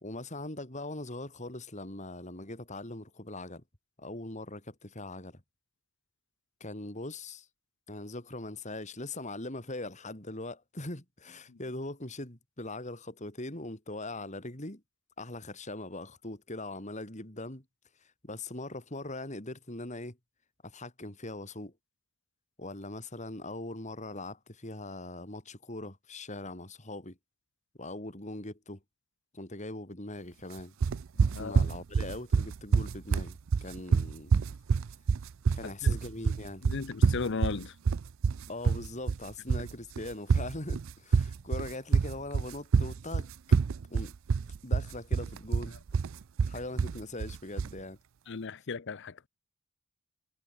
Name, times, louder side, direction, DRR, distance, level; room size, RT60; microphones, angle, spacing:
voice 1, 0.0-3.6 4.0-5.4 6.6-7.5 7.9-14.8 15.2-17.6 18.2-20.2 20.6-21.7 22.6-27.2 27.8-28.8 29.3-30.7 31.4-34.3 35.5-36.6 38.4-43.3 43.9-44.1 44.6-45.8 46.5-48.0, left 2 dB, 35° left, 3.4 m, -41 dB
sound 1, 30.8-47.8, right 5 dB, 65° right, 0.4 m, -27 dB
voice 2, 31.2-31.7 35.6-36.0 36.6-37.8 48.3-49.3, left 4 dB, 55° left, 0.6 m, -36 dB
head